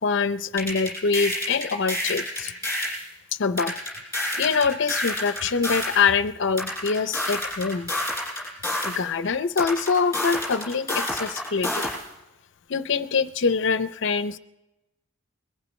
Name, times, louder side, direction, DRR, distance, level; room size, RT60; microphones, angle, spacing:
voice 1, 0.0-2.5 3.4-3.7 4.4-7.9 8.8-11.9 12.7-14.4, left 5 dB, 55° left, 13 dB, 0.5 m, -24 dB
sound 1, 0.6-3.0 3.6-6.0 6.6-9.0 9.6-12.0, left 1 dB, 10° left, 6.5 m, -28 dB
22.5 x 15.0 x 3.1 m, 0.99 s
head